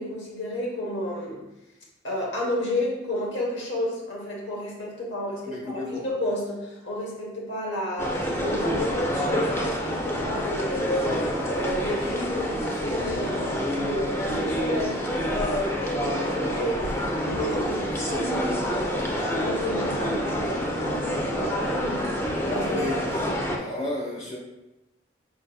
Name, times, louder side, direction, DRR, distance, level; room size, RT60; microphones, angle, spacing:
voice 1, 0.0-1.4 2.0-11.2 11.4-15.0 15.3-22.1 22.4-22.8, left 1 dB, 80° left, -3 dB, 1.1 m, -31 dB
voice 2, 5.4-6.0 22.6-24.4, left 2 dB, 40° left, -3 dB, 1.1 m, -33 dB
sound 1, 8.0-23.6, equal, 15° left, 0.4 m, -28 dB
5.1 x 3.8 x 2.3 m, 0.98 s
head